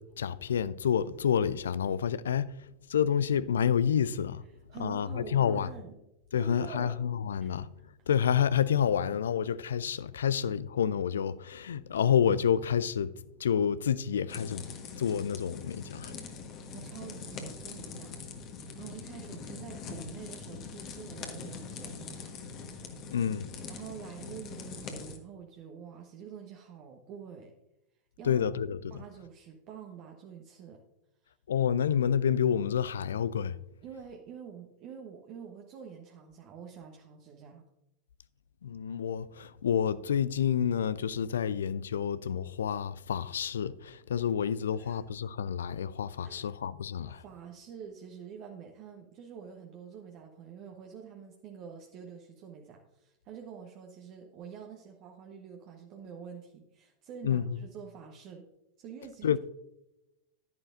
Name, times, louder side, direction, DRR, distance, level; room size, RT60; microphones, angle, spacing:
voice 1, 0.0-2.5 2.9-4.4 4.8-5.7 6.3-7.7 8.1-13.1 13.4-16.1 23.1-23.5 28.2-28.8 31.5-33.6 38.6-47.2 57.2-57.6 59.2-59.4, left 8 dB, 65° left, 0.4 m, -29 dB
voice 2, 4.7-6.0 6.4-6.9 7.4-7.6 16.4-18.2 18.6-22.4 23.7-27.5 28.2-28.5 28.9-30.8 33.8-37.7 44.8-45.0 46.2-46.6 47.1-58.5 58.8-59.3, right 7 dB, 40° right, 1.1 m, -47 dB
sound 1, 14.3-25.2, left 5 dB, 35° left, 1.4 m, -43 dB
11.0 x 10.5 x 2.6 m
figure-of-eight pair, 90°, 0 cm